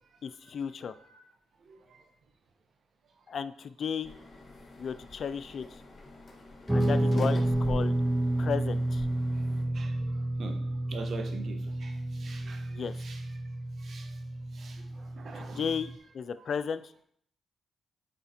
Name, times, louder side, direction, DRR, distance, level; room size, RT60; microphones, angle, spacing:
voice 1, 0.2-0.9 3.3-4.1 4.8-5.6 6.7-8.0 8.4-9.1 12.7-12.9 15.3-17.0, left 6 dB, 65° left, 14 dB, 0.3 m, -34 dB
voice 2, 1.7-2.0 9.7-10.6 10.9-13.2 13.8-14.1 14.5-15.7, right 3 dB, 65° right, 4 dB, 1.1 m, -44 dB
sound 1, 4.0-9.6, left 3 dB, 40° left, 1.5 m, -45 dB
Guitar, 6.7-16.0, right 1 dB, 5° right, 0.5 m, -30 dB
8.7 x 4.1 x 2.9 m, 0.66 s
cardioid pair, 65°, 0 cm